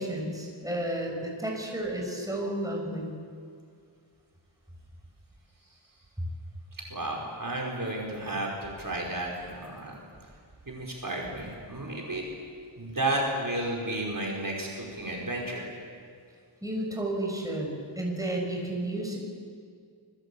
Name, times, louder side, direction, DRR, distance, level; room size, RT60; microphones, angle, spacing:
voice 1, 0.0-3.1 16.6-19.2, right 1 dB, 5° right, 0 dB, 6.8 m, -32 dB
voice 2, 6.8-10.0 10.7-12.3 12.8-15.6, right 1 dB, 45° right, -2 dB, 5.1 m, -32 dB
29.0 x 22.5 x 8.7 m, 2.2 s
wide cardioid pair, 80°, 46 cm